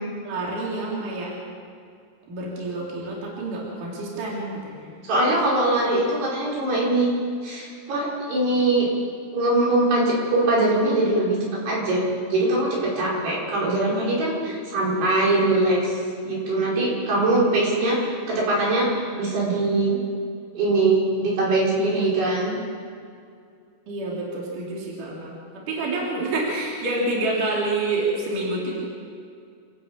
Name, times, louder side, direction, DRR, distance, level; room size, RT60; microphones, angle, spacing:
voice 1, 0.2-1.3 2.3-4.9 23.9-25.4 25.7-28.9, right 2 dB, 50° right, -4 dB, 4.9 m, -28 dB
voice 2, 5.0-7.1 7.4-8.9 9.3-11.4 11.7-12.1 12.3-16.0 16.3-18.0 18.3-18.9 19.2-20.0 20.5-22.5, right 2 dB, 80° right, -5 dB, 7.2 m, -22 dB
28.0 x 11.5 x 8.9 m, 2.3 s
omnidirectional pair, 4.7 m